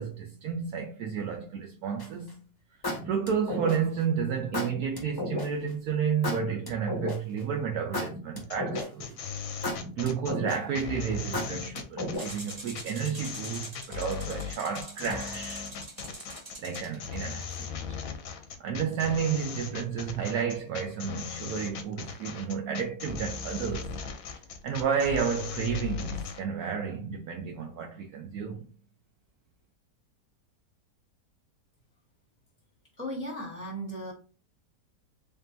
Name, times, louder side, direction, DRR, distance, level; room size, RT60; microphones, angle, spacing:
voice 1, 0.0-2.4 3.0-9.2 10.0-15.7 16.6-18.0 18.6-23.9 24.3-28.7, right 7 dB, 70° right, 1.0 m, -31 dB
sound 1, 2.0-2.3 2.8-4.0 4.5-5.5 6.2-7.4 7.9-9.1 9.6-10.8 11.3-12.5, left 1 dB, 20° left, 0.6 m, -33 dB
sound 2, 8.4-26.4, left 6 dB, 60° left, 1.0 m, -38 dB
sound 3, 12.1-17.6, right 1 dB, 25° right, 1.0 m, -45 dB
voice 2, 33.0-34.1, equal, 10° right, 1.2 m, -36 dB
3.8 x 3.6 x 2.7 m
omnidirectional pair, 1.9 m